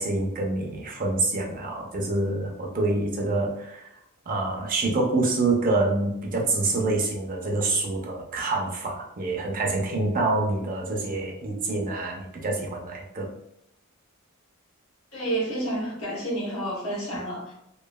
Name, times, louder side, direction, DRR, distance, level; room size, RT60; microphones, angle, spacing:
voice 1, 0.0-3.9 4.3-13.3, right 2 dB, 40° right, 0.5 m, -26 dB
voice 2, 15.1-17.5, right 1 dB, 70° left, 1.0 m, -30 dB
3.0 x 2.2 x 2.2 m
head